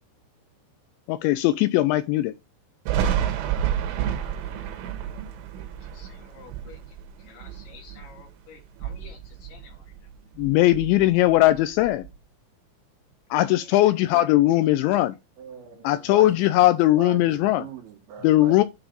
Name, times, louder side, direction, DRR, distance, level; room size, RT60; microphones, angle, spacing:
voice 1, 1.1-2.3 10.4-12.1 13.3-15.2 15.8-17.7 18.2-18.6, left 16 dB, 85° left, 2.7 m, -19 dB
Thunder, 2.9-8.3 8.7-10.1 10.4-12.1, right 9 dB, 90° right, 3.5 m, -30 dB
voice 2, 5.6-10.1 13.4-13.9, left 4 dB, 65° left, 3.7 m, -50 dB
voice 3, 15.4-16.6 17.0-18.6, right 8 dB, 75° right, 3.7 m, -41 dB
9.0 x 3.5 x 5.2 m
omnidirectional pair, 5.4 m